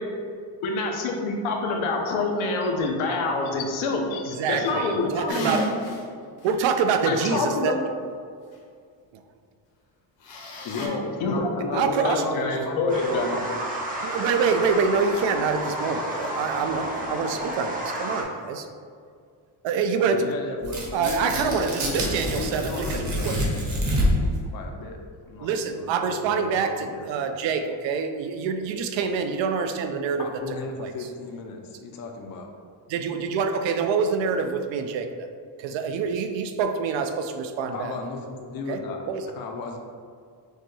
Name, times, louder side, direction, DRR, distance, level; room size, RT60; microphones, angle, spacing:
voice 1, 0.6-5.5 7.1-7.7 11.2-11.7 12.0-13.4, left 3 dB, 85° left, 2 dB, 0.8 m, -26 dB
voice 2, 4.3-5.6 6.4-7.9 9.1-9.2 11.7-12.2 12.5-12.6 14.0-18.7 19.6-20.2 20.9-23.4 25.4-30.3 30.8-30.9 32.9-35.3 35.6-37.9 38.7-38.8 39.1-39.3, right 5 dB, 70° right, 7 dB, 0.5 m, -26 dB
Nose Blowing, 5.3-6.0 6.4-6.5 10.2-10.9, equal, 70° left, 1.1 m, -31 dB
voice 3, 10.6-13.0 20.1-25.0 25.3-27.1 30.2-32.5 37.7-39.0 39.4-39.8, left 3 dB, 50° left, 3 dB, 0.6 m, -35 dB
sound 1, 12.9-18.2, right 1 dB, 20° right, 0.5 m, -31 dB
Tearing, 20.6-24.4, equal, 40° right, 0.9 m, -26 dB
6.3 x 2.3 x 3.2 m, 2.2 s
cardioid pair, 165°, 47 cm